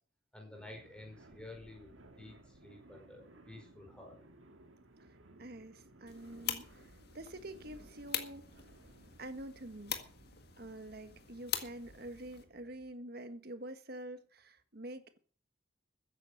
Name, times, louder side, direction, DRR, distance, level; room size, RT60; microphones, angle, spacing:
voice 1, 0.3-2.3 2.6-4.2, left 2 dB, 5° left, 5.2 m, -51 dB
sound 1, 0.5-12.9, right 1 dB, 85° right, 2.0 m, -60 dB
voice 2, 5.4-8.5 9.2-10.0 10.6-15.2, right 1 dB, 50° right, 1.5 m, -47 dB
sound 2, 6.1-12.4, left 10 dB, 55° left, 2.0 m, -43 dB
14.5 x 9.9 x 6.4 m
head